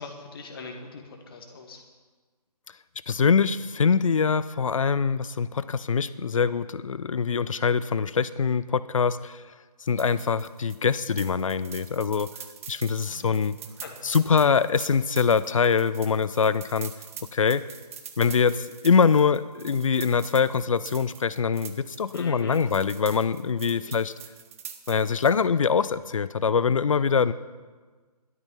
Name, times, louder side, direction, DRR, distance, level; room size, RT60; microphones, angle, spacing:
voice 1, 0.0-1.8 13.1-13.5 13.8-14.1 14.4-14.5 22.1-22.6 23.8-24.0 26.9-27.1, left 3 dB, 35° left, 3 dB, 2.0 m, -42 dB
voice 2, 3.1-9.4 9.9-12.3 12.7-13.6 14.0-16.9 17.3-17.6 18.2-24.1 24.9-27.3, left 6 dB, 55° left, 15 dB, 0.6 m, -23 dB
sound 1, 9.9-25.4, right 8 dB, 20° right, 0.7 m, -44 dB
13.5 x 12.5 x 5.7 m, 1.4 s
figure-of-eight pair, 150°, 20 cm